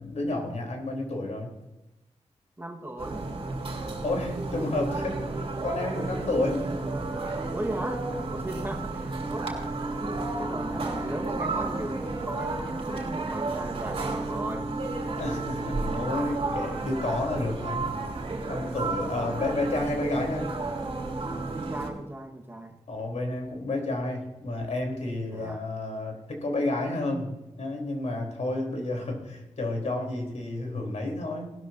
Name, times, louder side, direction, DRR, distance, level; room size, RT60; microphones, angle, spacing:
voice 1, 0.0-1.5 4.0-6.7 15.1-18.2 18.5-20.5 22.9-31.5, left 2 dB, 70° left, 2 dB, 3.5 m, -31 dB
voice 2, 2.6-3.2 7.5-9.6 10.0-14.7 15.9-16.0 18.7-18.9 21.6-22.8 25.3-25.6, right 1 dB, 20° right, 1 dB, 1.3 m, -37 dB
sound 1, 3.0-21.9, right 2 dB, 50° right, 3.1 m, -32 dB
Bass guitar, 11.1-15.1, right 4 dB, 5° left, 4.6 m, -48 dB
18.5 x 13.0 x 2.6 m, 1.0 s
wide cardioid pair, 140°, 12 cm